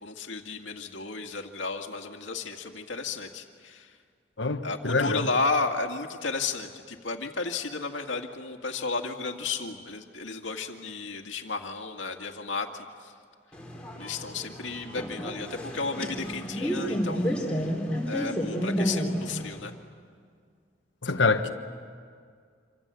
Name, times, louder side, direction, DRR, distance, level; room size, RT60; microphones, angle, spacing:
voice 1, 0.0-3.9 4.6-13.1 14.0-17.4 18.0-19.7, left 4 dB, 90° left, 4 dB, 2.2 m, -33 dB
voice 2, 4.4-5.3 21.0-21.5, left 3 dB, 75° left, 7 dB, 1.5 m, -25 dB
sound 1, 13.5-19.6, equal, 5° left, 4.2 m, -31 dB
27.5 x 26.0 x 8.4 m, 2.1 s
head